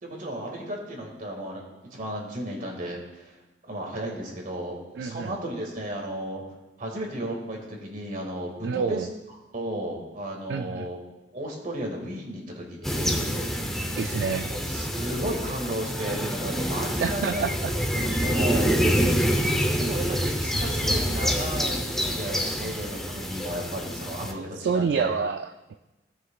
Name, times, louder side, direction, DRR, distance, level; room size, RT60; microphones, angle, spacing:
voice 1, 0.0-1.6 1.9-3.4 3.7-6.4 6.8-9.1 9.5-11.0 11.3-13.8 14.5-17.5 17.7-18.8 19.8-25.1, right 1 dB, 50° right, 0 dB, 2.0 m, -34 dB
voice 2, 5.0-5.3 8.6-9.1 10.5-10.9 14.0-14.5 17.0-17.7 24.3-25.8, right 5 dB, 65° right, 8 dB, 0.3 m, -28 dB
sound 1, 12.8-24.3, equal, ahead, 0.8 m, -27 dB
16.5 x 6.3 x 2.4 m, 1.1 s
head